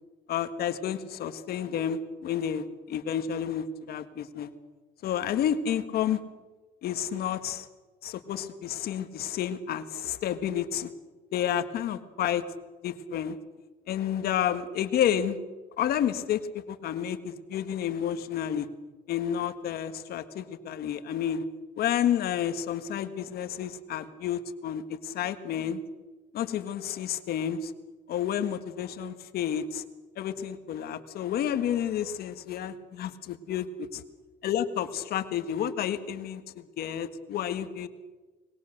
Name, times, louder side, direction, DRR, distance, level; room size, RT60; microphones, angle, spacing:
voice 1, 0.3-4.5 5.0-6.2 6.8-7.7 8.0-10.9 11.3-12.4 12.8-13.4 13.9-15.4 15.8-18.7 19.1-21.4 21.8-25.8 26.3-27.7 28.1-29.8 30.2-33.9 34.4-37.9, left 9 dB, 65° left, 10 dB, 1.7 m, -30 dB
24.0 x 21.5 x 6.6 m, 1.2 s
cardioid pair, 110°, 17 cm